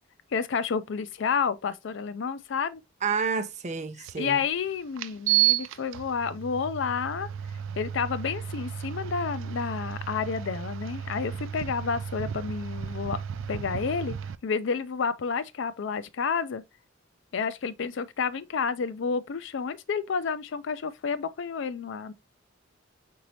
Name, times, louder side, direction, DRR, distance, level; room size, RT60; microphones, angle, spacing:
voice 1, 0.3-2.8 4.2-7.3 7.8-13.2 13.5-14.1 14.4-16.6 17.3-22.1, left 5 dB, 65° left, 0.4 m, -30 dB
voice 2, 3.0-4.4, right 5 dB, 35° right, 0.6 m, -29 dB
sound 1, 4.0-4.1 5.0-14.4, right 11 dB, 75° right, 0.4 m, -32 dB
4.6 x 4.0 x 2.7 m
head